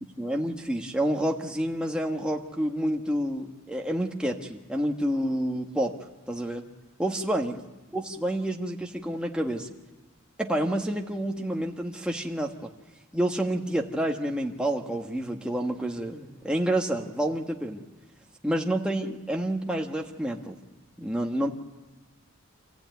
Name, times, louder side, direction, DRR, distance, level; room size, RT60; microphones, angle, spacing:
voice 1, 0.2-5.9 6.3-6.6 7.0-7.6 7.9-9.7 10.4-12.7 13.1-17.8 18.4-20.6 21.0-21.5, right 1 dB, 5° right, 1 dB, 1.4 m, -29 dB
27.5 x 15.0 x 9.2 m, 1.2 s
head